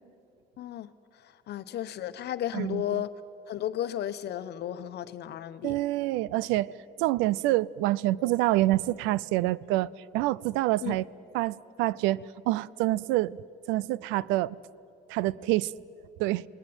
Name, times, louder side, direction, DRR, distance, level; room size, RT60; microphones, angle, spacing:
voice 1, 0.6-0.9 1.2-3.1 3.5-5.8 10.8-11.0, left 11 dB, 60° left, 1.1 m, -34 dB
voice 2, 2.5-3.0 5.6-11.1 11.3-13.4 13.7-14.6 15.1-15.7 16.2-16.5, right 17 dB, 80° right, 0.5 m, -27 dB
27.5 x 19.5 x 8.0 m
supercardioid pair, 75°, 19 cm